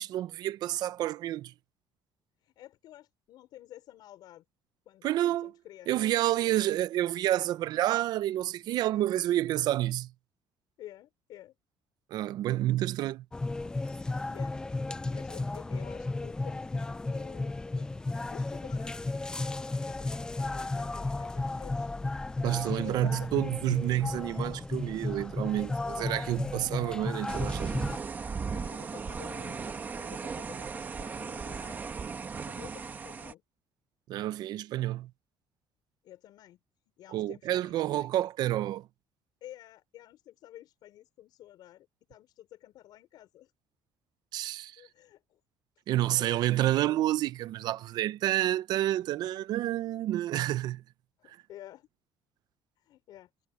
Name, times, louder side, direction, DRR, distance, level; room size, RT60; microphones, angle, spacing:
voice 1, 0.0-1.5 5.0-5.5 5.9-10.1 12.1-13.2 22.4-27.7 34.1-35.1 37.1-38.9 44.3-44.8 45.9-50.8, right 14 dB, 55° right, 0.6 m, -29 dB
voice 2, 2.4-4.4 4.9-6.7 9.0-9.1 10.8-11.5 12.5-12.7 14.3-14.6 15.1-17.9 18.3-21.9 22.5-23.4 28.3-33.4 36.0-36.6 37.0-38.3 39.4-43.5 44.8-45.4 46.1-47.0 51.2-51.9 52.8-53.3, left 13 dB, 60° left, 5.7 m, -51 dB
sound 1, 13.3-28.0, left 2 dB, 10° left, 0.5 m, -34 dB
sound 2, 27.3-33.3, right 5 dB, 20° right, 1.1 m, -36 dB
cardioid pair, 170°, 8 cm